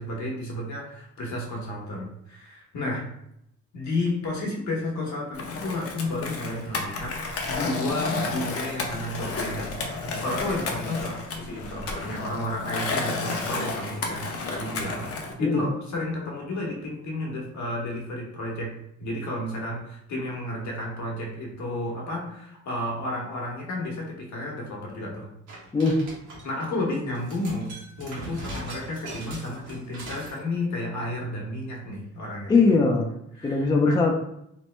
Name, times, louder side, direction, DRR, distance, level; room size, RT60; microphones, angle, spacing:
voice 1, 0.0-3.0 3.7-7.2 7.4-15.1 15.4-18.7 19.0-25.3 26.4-27.7 28.0-32.5 33.4-34.0, left 1 dB, 70° left, -2 dB, 1.0 m, -32 dB
Skateboard, 5.3-15.3, left 3 dB, 50° left, 0.7 m, -31 dB
sound 1, 25.5-26.7 27.1-30.4, right 1 dB, 70° right, 1.2 m, -40 dB
voice 2, 32.5-33.1 33.4-34.1, left 3 dB, 15° left, 2 dB, 0.4 m, -20 dB
3.0 x 2.0 x 3.2 m, 0.78 s
cardioid pair, 90°, 30 cm